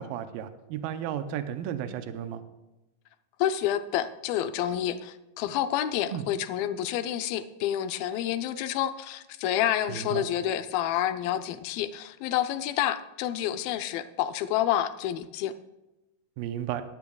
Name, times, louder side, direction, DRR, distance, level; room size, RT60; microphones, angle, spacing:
voice 1, 0.0-2.4 6.1-6.2 9.9-10.3 16.4-16.8, right 10 dB, 85° right, 9 dB, 2.4 m, -33 dB
voice 2, 3.4-15.5, left 11 dB, 80° left, 11 dB, 2.4 m, -29 dB
17.0 x 12.0 x 2.3 m, 0.99 s
omnidirectional pair, 4.3 m